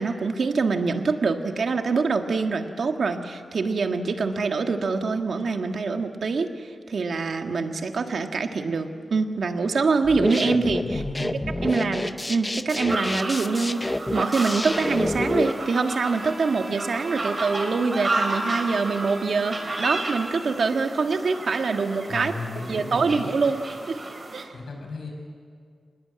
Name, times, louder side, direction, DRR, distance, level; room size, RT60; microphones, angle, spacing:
voice 1, 0.0-11.3 11.6-22.3 22.7-24.0 24.3-24.5, right 4 dB, 65° right, 5 dB, 1.6 m, -25 dB
sound 1, 10.0-15.5, left 1 dB, 15° left, 0.7 m, -28 dB
voice 2, 10.4-11.9 22.1-23.3 24.5-25.1, left 3 dB, 85° left, 2 dB, 5.8 m, -35 dB
sound 2, 12.9-24.4, right 2 dB, 35° right, 3.6 m, -32 dB
Bowed string instrument, 15.5-20.2, right 2 dB, 15° right, 5.4 m, -41 dB
25.5 x 20.5 x 8.8 m, 2.1 s
wide cardioid pair, 160°, 0 cm